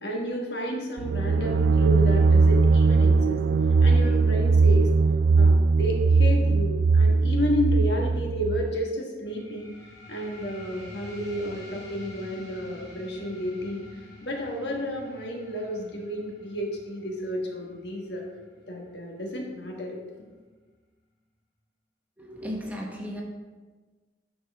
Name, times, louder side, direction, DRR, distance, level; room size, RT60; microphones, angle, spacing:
voice 1, 0.0-3.4 3.8-4.9 5.4-9.7 10.1-13.8 14.2-18.2 18.7-20.0, equal, 70° left, 0 dB, 1.4 m, -31 dB
sound 1, 1.0-8.7, right 4 dB, 85° right, 0.3 m, -20 dB
sound 2, 9.2-20.3, left 1 dB, 20° left, 2.5 m, -48 dB
voice 2, 22.2-23.2, equal, 10° right, -1 dB, 1.0 m, -35 dB
11.5 x 4.4 x 3.5 m, 1.3 s
head